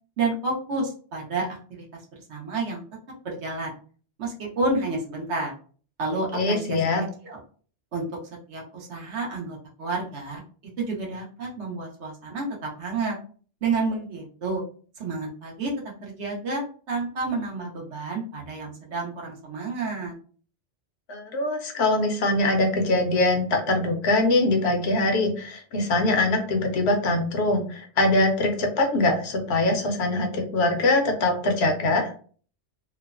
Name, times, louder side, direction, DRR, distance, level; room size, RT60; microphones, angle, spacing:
voice 1, 0.2-2.0 2.3-2.8 3.2-3.7 4.2-5.5 6.0-6.8 7.2-7.4 7.9-8.1 8.5-10.4 10.8-13.2 13.6-14.6 15.0-15.7 16.0-20.2, right 3 dB, 70° right, -1 dB, 1.1 m, -30 dB
voice 2, 6.3-7.0 21.1-32.1, left 2 dB, 70° left, 3 dB, 0.9 m, -23 dB
3.0 x 2.0 x 2.4 m, 0.42 s
omnidirectional pair, 1.2 m